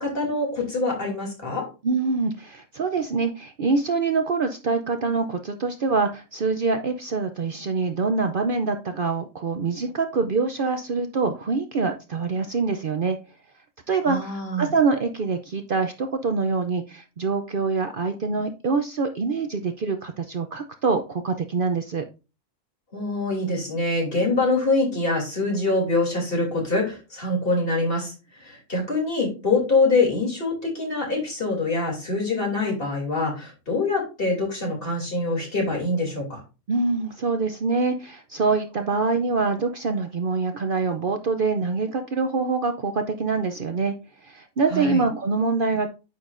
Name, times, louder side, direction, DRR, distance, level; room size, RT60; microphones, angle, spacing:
voice 1, 0.0-1.7 14.0-14.7 22.9-36.4 44.7-45.0, left 2 dB, 45° left, -1 dB, 3.1 m, -24 dB
voice 2, 1.8-13.2 13.9-22.0 36.7-43.9 44.2-45.9, right 4 dB, 50° right, 7 dB, 0.8 m, -25 dB
9.3 x 6.3 x 2.5 m, 0.30 s
omnidirectional pair, 1.3 m